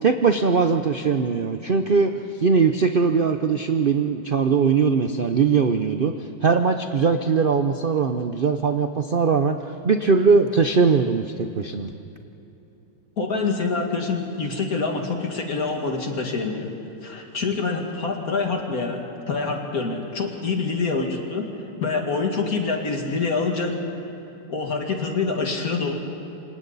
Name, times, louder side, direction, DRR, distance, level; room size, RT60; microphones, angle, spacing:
voice 1, 0.0-2.1 2.4-6.1 6.4-9.6 9.8-11.9, right 5 dB, 70° right, 7 dB, 0.5 m, -20 dB
voice 2, 13.2-16.7 17.0-19.0 19.3-21.5 21.8-23.7 24.5-25.9, left 4 dB, 50° left, 1 dB, 2.6 m, -26 dB
28.0 x 26.0 x 4.1 m, 3.0 s
omnidirectional pair, 2.0 m